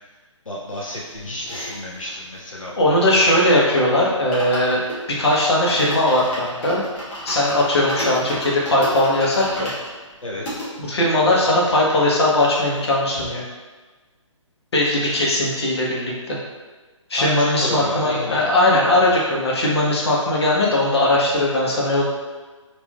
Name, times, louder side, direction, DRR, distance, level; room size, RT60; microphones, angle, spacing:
voice 1, 0.5-3.0 10.2-10.6 17.2-18.5, left 1 dB, 90° left, -3 dB, 0.5 m, -30 dB
sound 1, 0.7-3.5 3.8-3.9 4.1-10.7 11.3-11.4 11.5-11.6 11.9-12.9 13.2-13.3, left 1 dB, 10° left, 0.5 m, -34 dB
voice 2, 2.8-4.8 5.1-6.8 7.2-9.7 10.8-13.4 14.7-16.4 17.1-22.1, left 1 dB, 55° left, -4 dB, 0.8 m, -19 dB
3.5 x 2.5 x 2.3 m, 1.3 s
figure-of-eight pair, 140°, 16 cm